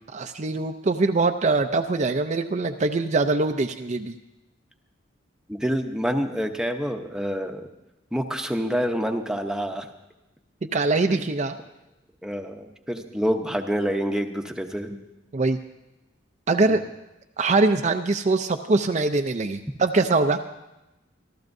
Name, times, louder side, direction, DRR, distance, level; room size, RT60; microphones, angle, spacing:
voice 1, 0.1-4.1 10.7-11.6 15.3-15.6 16.5-16.8 17.4-20.4, right 3 dB, 40° right, 6 dB, 0.5 m, -23 dB
voice 2, 5.5-7.7 8.1-9.9 11.1-11.2 12.2-15.0 16.7-16.8, equal, 5° right, 4 dB, 0.8 m, -27 dB
26.5 x 13.0 x 2.7 m, 0.97 s
head